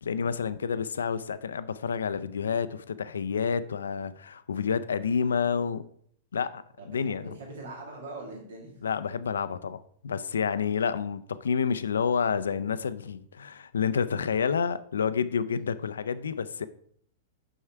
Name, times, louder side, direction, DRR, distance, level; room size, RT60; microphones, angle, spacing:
voice 1, 0.0-5.8 6.3-6.6 6.9-7.4 8.8-16.7, left 6 dB, 75° left, 0.4 m, -29 dB
voice 2, 6.8-8.7 15.5-15.7, right 2 dB, 70° right, 1.9 m, -42 dB
6.3 x 5.6 x 4.4 m
figure-of-eight pair, 100°, 0 cm